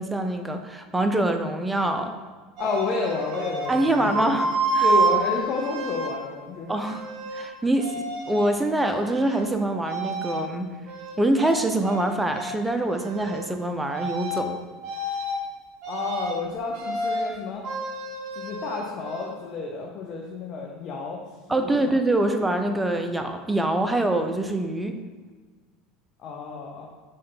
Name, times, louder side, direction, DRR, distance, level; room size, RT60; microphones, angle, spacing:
voice 1, 0.0-2.2 3.7-4.9 6.7-7.1 7.3-10.7 11.2-14.6 21.5-24.9, right 1 dB, 10° right, 6 dB, 0.5 m, -25 dB
voice 2, 2.6-4.3 4.8-6.7 15.9-17.6 18.4-21.2 21.6-21.9 26.2-26.9, left 4 dB, 50° left, -1 dB, 0.7 m, -30 dB
sound 1, 2.6-6.1 6.7-7.5 7.8-8.5 8.8-9.5 9.8-10.4 10.9-12.1 12.3-12.5 12.9-13.5 13.9-14.5 14.8-15.4 15.8-16.4 16.7-17.3 17.6-19.3, right 2 dB, 60° right, 0.9 m, -29 dB
4.3 x 3.2 x 3.9 m, 1.4 s
hypercardioid pair, 85°, 0 cm